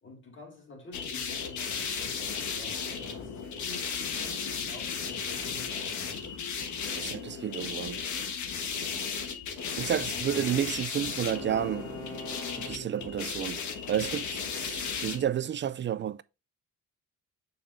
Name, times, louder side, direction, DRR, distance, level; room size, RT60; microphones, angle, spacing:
voice 1, 0.0-6.3 10.0-10.4, left 2 dB, 40° left, 2.3 m, -49 dB
sound 1, 0.9-15.2, left 6 dB, 75° left, 1.3 m, -35 dB
voice 2, 7.0-8.0 9.8-11.9 12.5-13.6 13.9-16.2, right 10 dB, 40° right, 0.4 m, -31 dB
Bowed string instrument, 9.6-13.2, right 2 dB, 10° left, 2.3 m, -47 dB
7.0 x 5.3 x 2.7 m
cardioid pair, 90°, 30 cm